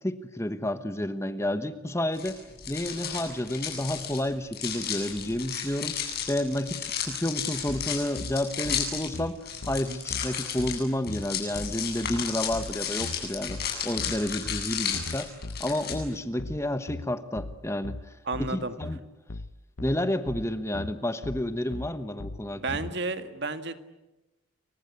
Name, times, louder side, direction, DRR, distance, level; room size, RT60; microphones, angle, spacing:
voice 1, 0.0-2.4 2.7-6.0 6.3-9.4 9.6-15.3 15.6-19.0 19.8-22.6, left 1 dB, 15° left, 10 dB, 1.1 m, -30 dB
sound 1, 2.1-15.9, left 8 dB, 45° left, 7.9 m, -33 dB
sound 2, 7.7-22.9, left 2 dB, 60° left, 0.9 m, -39 dB
voice 2, 18.3-18.7 22.5-23.8, right 3 dB, 50° right, 9 dB, 1.8 m, -32 dB
30.0 x 24.0 x 8.3 m, 1.0 s
head